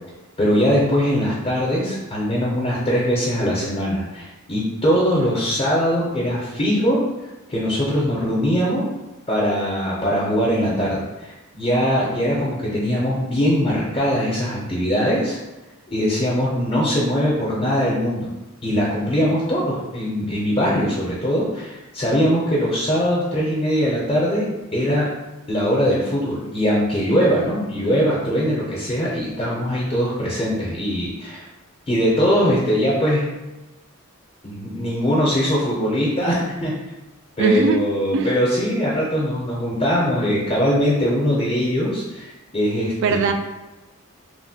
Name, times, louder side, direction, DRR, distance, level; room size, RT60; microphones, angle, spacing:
voice 1, 0.4-7.0 7.5-8.9 9.3-15.4 15.9-18.3 18.6-24.4 24.7-25.1 25.5-31.4 31.9-33.3 34.4-36.7 37.4-43.3, equal, 30° left, -6 dB, 0.5 m, -21 dB
voice 2, 37.4-37.9 38.1-38.3 43.0-43.3, right 4 dB, 60° right, 6 dB, 0.3 m, -19 dB
3.0 x 2.1 x 2.7 m, 1.1 s
head